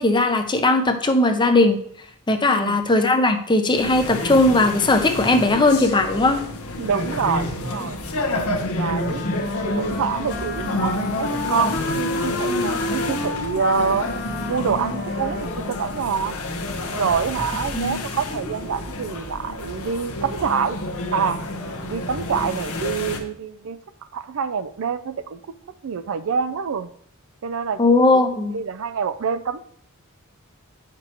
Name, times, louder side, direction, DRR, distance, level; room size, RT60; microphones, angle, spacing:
voice 1, 0.0-1.8 2.3-6.4 17.7-18.0 27.8-28.5, left 2 dB, 20° left, 7 dB, 0.6 m, -18 dB
voice 2, 2.5-2.8 6.8-8.0 8.8-9.2 9.6-14.1 14.5-16.4 17.0-20.8 21.1-21.4 21.9-23.8 24.1-25.4 25.8-26.9 27.4-27.8 28.5-29.6, right 6 dB, 65° right, 13 dB, 0.4 m, -26 dB
sound 1, 3.7-23.2, left 1 dB, 75° left, 1.0 m, -29 dB
Wind instrument woodwind instrument, 8.9-16.4, left 2 dB, 50° left, 0.9 m, -30 dB
8.9 x 6.0 x 3.0 m, 0.64 s
head